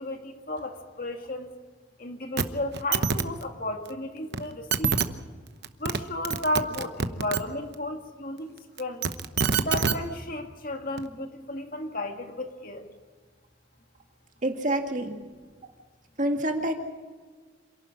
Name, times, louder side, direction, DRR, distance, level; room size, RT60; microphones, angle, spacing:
voice 1, 0.0-1.5 2.0-5.0 5.8-8.5 8.8-9.1 9.6-12.9, left 1 dB, 50° left, 4 dB, 2.1 m, -33 dB
sound 1, 2.4-2.5 2.7-3.2 4.3-4.4 4.7-5.1 5.6-6.0 6.2-7.4 8.8-10.0 11.0-11.1, right 5 dB, 60° right, 0.9 m, -25 dB
voice 2, 14.4-15.2 16.2-16.7, right 1 dB, 40° right, 3 dB, 2.2 m, -27 dB
27.0 x 12.0 x 8.7 m, 1.4 s
head